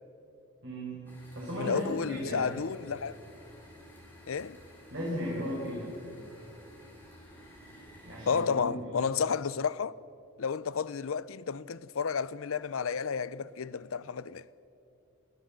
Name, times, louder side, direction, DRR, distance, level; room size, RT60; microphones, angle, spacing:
voice 1, 0.6-1.1 1.3-2.5 4.9-5.9 8.0-8.9, equal, 55° right, 5.3 m, -36 dB
sound 1, 1.1-8.5, equal, 10° left, 4.4 m, -53 dB
voice 2, 1.6-3.2 4.3-4.6 8.3-10.0 10.4-14.5, left 6 dB, 70° left, 0.5 m, -31 dB
22.5 x 16.5 x 7.6 m
head